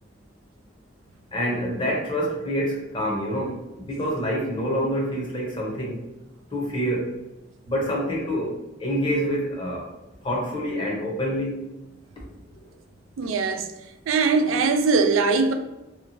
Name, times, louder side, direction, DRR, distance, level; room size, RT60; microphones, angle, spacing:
voice 1, 1.3-6.0 6.5-7.2 7.6-9.9 10.2-11.7, equal, 25° left, 0.7 m, -27 dB
voice 2, 13.2-13.7 14.1-15.5, right 4 dB, 90° right, 0.3 m, -21 dB
2.8 x 2.2 x 2.6 m
head